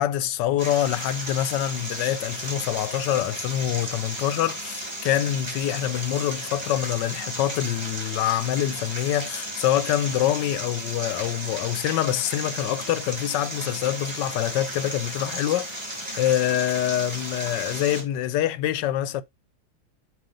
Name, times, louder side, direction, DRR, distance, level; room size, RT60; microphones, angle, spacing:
voice 1, 0.0-19.2, left 12 dB, 80° left, 1.3 m, -25 dB
sound 1, 0.6-18.0, right 1 dB, 15° right, 2.4 m, -34 dB
7.6 x 3.0 x 5.1 m
omnidirectional pair, 1.9 m